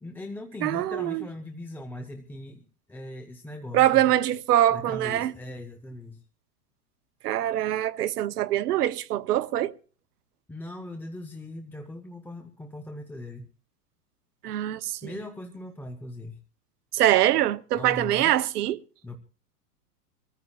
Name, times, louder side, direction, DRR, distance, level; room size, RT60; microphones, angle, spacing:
voice 1, 0.0-4.1 4.7-6.2 10.5-13.5 15.0-16.4 17.7-18.3 19.0-19.2, left 1 dB, 5° left, 0.8 m, -39 dB
voice 2, 0.6-1.2 3.7-5.3 7.2-9.7 14.4-15.1 16.9-18.8, right 13 dB, 75° right, 1.0 m, -23 dB
25.5 x 14.5 x 2.4 m
hypercardioid pair, 130°, 47 cm